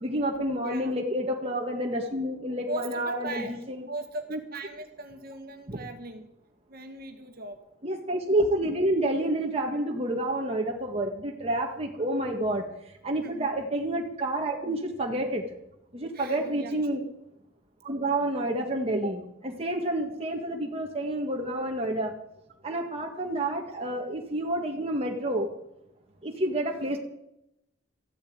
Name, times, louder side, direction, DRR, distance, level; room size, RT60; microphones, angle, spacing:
voice 1, 0.0-3.6 4.3-4.4 5.7-5.8 7.8-12.6 13.0-15.4 15.9-17.0 17.8-22.1 22.6-25.5 26.2-27.0, right 1 dB, 30° right, 1 dB, 1.8 m, -29 dB
voice 2, 2.7-6.3 6.7-7.6 13.2-13.5 16.1-16.9, right 2 dB, 55° right, 5 dB, 2.0 m, -39 dB
14.5 x 8.1 x 9.6 m, 0.82 s
head